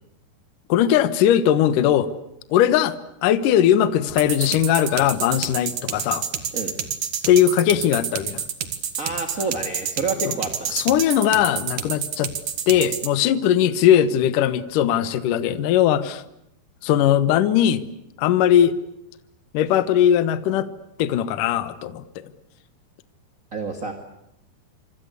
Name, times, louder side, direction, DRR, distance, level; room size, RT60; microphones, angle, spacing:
voice 1, 0.7-2.1 2.5-3.0 3.2-6.2 7.3-8.4 10.7-12.3 12.7-16.2 16.8-17.8 18.2-18.8 19.5-20.7 21.0-22.3, left 10 dB, 65° left, 14 dB, 2.4 m, -19 dB
sound 1, 4.1-13.1, right 8 dB, 55° right, 3.0 m, -28 dB
voice 2, 9.0-10.8 23.5-23.9, right 3 dB, 30° right, 6 dB, 1.6 m, -28 dB
26.5 x 26.5 x 8.2 m, 0.82 s
omnidirectional pair, 4.9 m